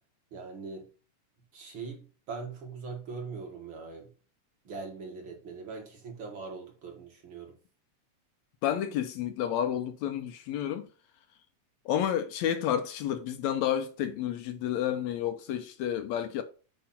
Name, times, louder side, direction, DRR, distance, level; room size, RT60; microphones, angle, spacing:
voice 1, 0.3-0.9 1.5-4.1 4.7-7.5, right 4 dB, 45° right, 2.2 m, -41 dB
voice 2, 8.6-10.9 11.9-16.4, left 10 dB, 75° left, 1.9 m, -30 dB
8.6 x 3.0 x 5.7 m
omnidirectional pair, 3.5 m